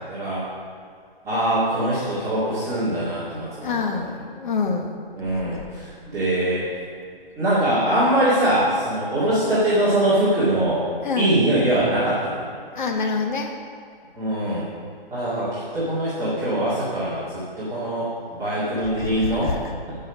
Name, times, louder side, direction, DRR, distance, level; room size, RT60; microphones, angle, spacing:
voice 1, 0.1-0.5 1.2-3.8 5.2-6.7 7.4-10.8 11.2-12.5 14.2-14.7 15.1-18.1 18.4-19.5, right 1 dB, 10° right, -13 dB, 2.1 m, -22 dB
voice 2, 3.6-4.9 5.4-5.6 11.0-11.4 12.7-13.5 18.9-19.7, left 4 dB, 55° left, 3 dB, 1.3 m, -26 dB
14.0 x 5.6 x 5.3 m, 2.3 s
hypercardioid pair, 150°, 29 cm